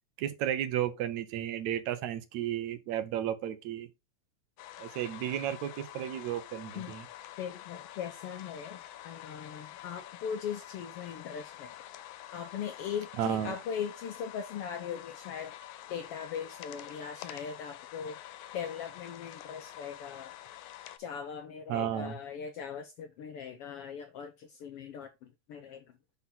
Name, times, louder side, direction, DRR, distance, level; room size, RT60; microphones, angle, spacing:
voice 1, 0.2-3.9 4.8-7.1 13.2-13.6 21.7-22.2, right 10 dB, 75° right, 2.1 m, -33 dB
sound 1, 4.6-21.0, left 13 dB, 90° left, 2.2 m, -47 dB
voice 2, 7.4-11.7 12.3-15.5 15.9-18.2 18.5-20.3 21.0-25.8, left 7 dB, 75° left, 1.4 m, -40 dB
5.9 x 5.7 x 3.7 m
omnidirectional pair, 3.4 m